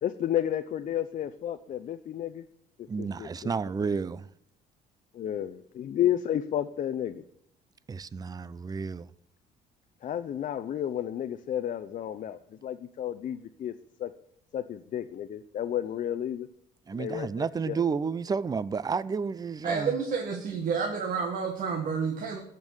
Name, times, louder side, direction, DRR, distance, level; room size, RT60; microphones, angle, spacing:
voice 1, 0.0-2.4 3.0-3.3 5.1-7.3 10.0-13.7 14.0-14.1 14.5-16.5 16.9-17.8, left 10 dB, 50° left, 0.7 m, -32 dB
voice 2, 2.9-4.3 7.9-9.1 16.9-20.0, right 5 dB, 20° right, 0.5 m, -31 dB
voice 3, 19.6-22.4, right 5 dB, 55° right, 1.8 m, -30 dB
14.5 x 5.4 x 9.0 m
cardioid pair, 110°, 17 cm